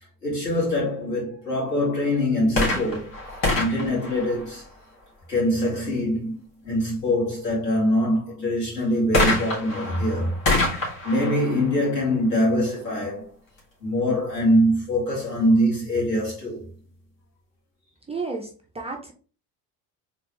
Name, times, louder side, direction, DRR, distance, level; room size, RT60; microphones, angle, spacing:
voice 1, 0.2-3.1 3.6-4.6 5.3-6.3 6.6-10.4 11.0-13.3 13.8-16.7, equal, 85° left, 2.1 m, -23 dB
sound 1, 2.5-5.1 9.1-12.8 13.6-13.7, left 2 dB, 45° left, 2.2 m, -27 dB
voice 2, 18.1-19.1, right 4 dB, 15° right, 0.7 m, -32 dB
4.1 x 3.6 x 3.1 m
figure-of-eight pair, 60°, 47 cm